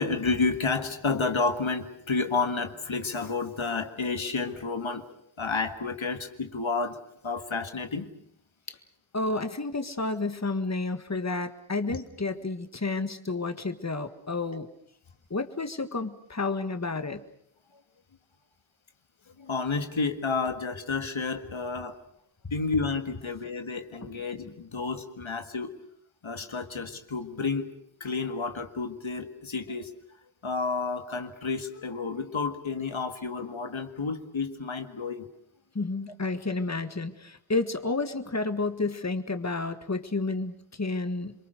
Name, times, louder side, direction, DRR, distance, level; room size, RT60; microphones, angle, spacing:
voice 1, 0.0-7.0 7.2-8.1 11.9-12.0 17.7-17.8 19.4-22.0 22.5-25.7 26.2-27.7 28.0-29.9 30.4-35.3, left 4 dB, 80° left, 7 dB, 1.8 m, -30 dB
voice 2, 9.1-14.7 15.3-17.2 35.7-41.3, left 3 dB, 35° left, 9 dB, 1.7 m, -31 dB
27.0 x 23.5 x 6.6 m, 0.68 s
wide cardioid pair, 50°, 46 cm